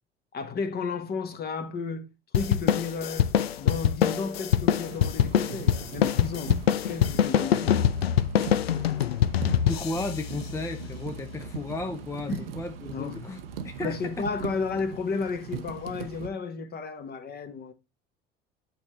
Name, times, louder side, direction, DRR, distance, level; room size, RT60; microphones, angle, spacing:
voice 1, 0.3-2.1 2.3-3.3 3.6-6.6 6.9-7.9 12.3-12.4 12.9-13.2 13.8-17.7, left 4 dB, 30° left, 1.2 m, -33 dB
sound 1, 2.3-11.2, left 10 dB, 80° left, 0.5 m, -25 dB
sound 2, 4.8-16.3, right 7 dB, 70° right, 0.8 m, -40 dB
voice 2, 9.6-14.3, left 2 dB, 10° left, 0.7 m, -34 dB
8.4 x 4.3 x 3.1 m
figure-of-eight pair, 65°, 30 cm